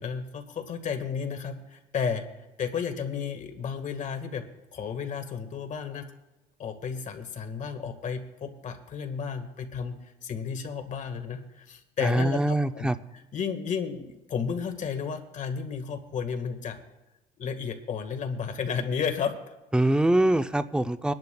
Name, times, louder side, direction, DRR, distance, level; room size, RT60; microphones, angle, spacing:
voice 1, 0.0-2.2 2.6-4.4 4.7-6.1 6.6-12.9 13.3-16.8 17.4-19.3, left 6 dB, 45° left, 6 dB, 1.6 m, -32 dB
voice 2, 12.0-12.9 19.7-21.1, right 1 dB, 5° right, 10 dB, 0.5 m, -23 dB
25.0 x 10.5 x 2.3 m, 1.0 s
cardioid pair, 110°, 17 cm